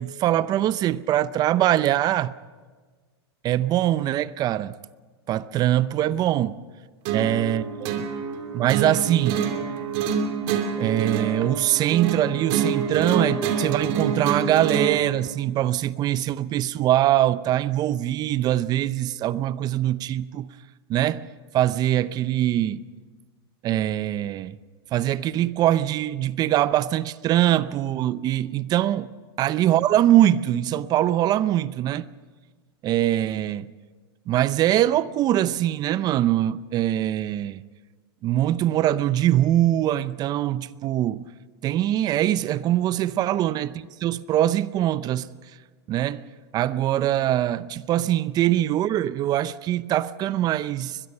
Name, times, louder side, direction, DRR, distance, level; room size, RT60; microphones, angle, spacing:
voice 1, 0.0-2.3 3.4-4.7 5.3-6.6 7.1-8.1 8.5-9.5 10.8-20.5 20.9-21.3 21.5-22.8 23.6-24.5 24.9-29.1 29.4-32.1 32.8-33.7 34.3-37.6 38.2-41.3 41.6-45.3 45.9-46.2 46.5-51.0, right 13 dB, 30° right, 0.6 m, -23 dB
sound 1, 7.0-15.0, right 6 dB, 45° right, 2.7 m, -27 dB
22.0 x 22.0 x 5.6 m
hypercardioid pair, 130°, 14 cm